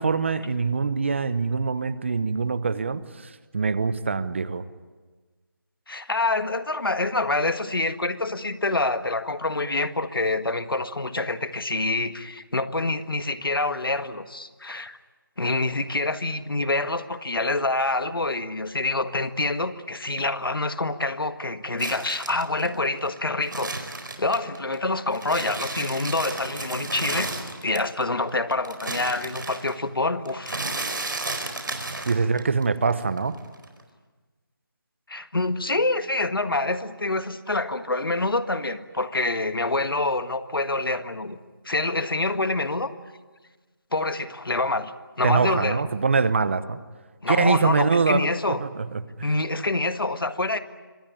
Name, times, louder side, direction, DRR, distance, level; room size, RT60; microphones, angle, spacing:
voice 1, 0.0-4.6 32.1-33.4 45.2-46.8 47.3-49.3, right 4 dB, 35° right, 15 dB, 0.9 m, -24 dB
voice 2, 5.9-15.0 15.4-23.8 24.2-27.3 27.6-30.6 35.1-41.4 41.6-42.9 43.9-44.9 45.2-45.9 47.2-48.6 49.2-50.6, left 2 dB, 90° left, 11 dB, 1.7 m, -26 dB
sound 1, 21.8-24.8 25.1-28.0 28.3-32.6 32.9-33.8, right 2 dB, 65° right, 4.6 m, -33 dB
25.0 x 18.5 x 10.0 m, 1.3 s
figure-of-eight pair, 170°, 12 cm